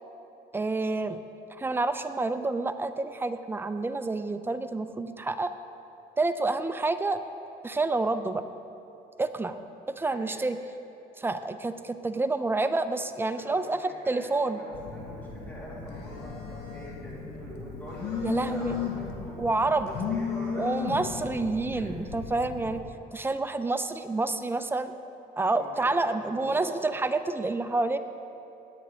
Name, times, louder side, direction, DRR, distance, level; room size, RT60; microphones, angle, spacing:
voice 1, 0.5-1.2 1.5-5.5 6.2-7.2 7.6-8.4 9.2-9.6 10.0-10.6 11.2-14.6 18.2-18.8 19.4-19.9 20.6-22.8 23.1-25.0 25.4-28.0, right 3 dB, 15° right, 9 dB, 0.5 m, -28 dB
voice 2, 10.0-10.4 13.3-21.0 21.7-21.9 25.5-26.7, equal, 10° left, -7 dB, 2.7 m, -43 dB
Telephone, 14.7-22.8, left 6 dB, 75° left, 1.4 m, -35 dB
16.5 x 10.0 x 3.1 m, 3.0 s
cardioid pair, 110°, 17 cm